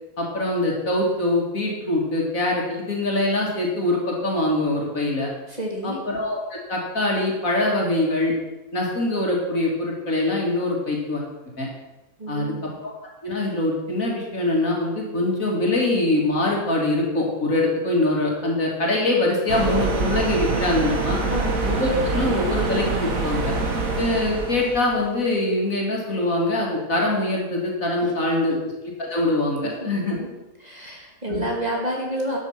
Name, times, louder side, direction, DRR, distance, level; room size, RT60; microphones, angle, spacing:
voice 1, 0.2-5.3 5.8-8.3 8.7-11.2 11.6-11.7 12.3-12.9 13.2-21.2 21.6-23.5 24.0-28.7 29.0-30.2 31.3-31.4, left 2 dB, 55° left, -2 dB, 3.1 m, -23 dB
voice 2, 5.5-6.0 12.2-12.7 21.3-21.6 28.0-28.1 29.6-29.9 30.2-30.3 30.6-32.4, equal, 25° right, -2 dB, 2.4 m, -29 dB
sound 1, 19.5-25.1, right 3 dB, 60° right, 2.0 m, -25 dB
12.5 x 8.8 x 6.0 m, 1.1 s
omnidirectional pair, 1.7 m